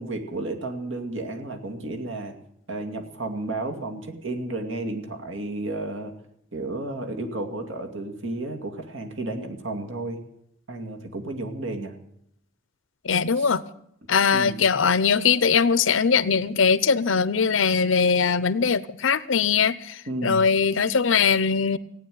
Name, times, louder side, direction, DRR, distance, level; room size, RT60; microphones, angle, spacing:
voice 1, 0.0-2.3 2.7-6.1 6.5-10.2 10.7-11.9 13.4-13.5 14.3-14.6 20.1-20.4, right 2 dB, 80° right, 2.3 m, -32 dB
voice 2, 13.0-13.6 14.1-21.8, left 6 dB, 80° left, 0.7 m, -21 dB
16.5 x 9.3 x 9.2 m
head